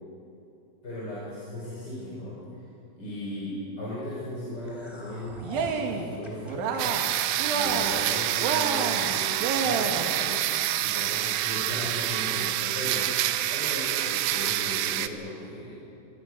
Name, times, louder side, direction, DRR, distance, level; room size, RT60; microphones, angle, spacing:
voice 1, 0.8-2.4 2.9-7.0 7.5-10.4 10.8-13.1 13.5-15.7, left 1 dB, 25° left, -8 dB, 6.2 m, -37 dB
sound 1, 4.6-10.9 11.3-11.4 11.8-12.0, left 1 dB, 5° left, 2.8 m, -45 dB
Cheering, 5.4-6.1 6.4-7.1 7.4-8.1 8.4-10.2, right 5 dB, 65° right, 3.1 m, -29 dB
sound 2, 6.8-15.1, right 13 dB, 80° right, 2.7 m, -27 dB
25.5 x 22.5 x 6.4 m, 2.7 s
omnidirectional pair, 4.9 m